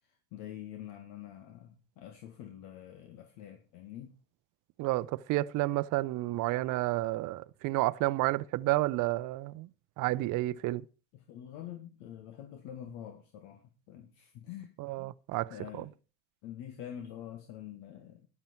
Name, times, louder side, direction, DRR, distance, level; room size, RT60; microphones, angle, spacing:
voice 1, 0.1-4.1 10.1-10.2 11.1-14.8 15.5-15.9 16.4-18.3, left 10 dB, 65° left, 2.1 m, -46 dB
voice 2, 4.8-9.7 10.0-10.8 14.8-15.8, right 18 dB, 45° right, 0.7 m, -31 dB
13.0 x 11.0 x 4.5 m
supercardioid pair, 120°, 42 cm